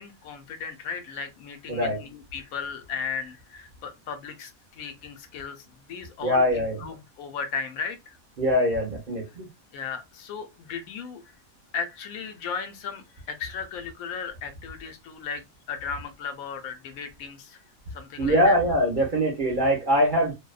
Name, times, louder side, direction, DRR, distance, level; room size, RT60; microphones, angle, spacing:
voice 1, 0.0-8.2 9.7-11.2 11.7-17.6 17.9-18.6, left 6 dB, 80° left, 1.0 m, -36 dB
voice 2, 1.7-2.0 6.2-6.8 8.4-9.5 18.2-20.3, equal, 50° right, 0.6 m, -23 dB
2.6 x 2.1 x 2.3 m
omnidirectional pair, 1.5 m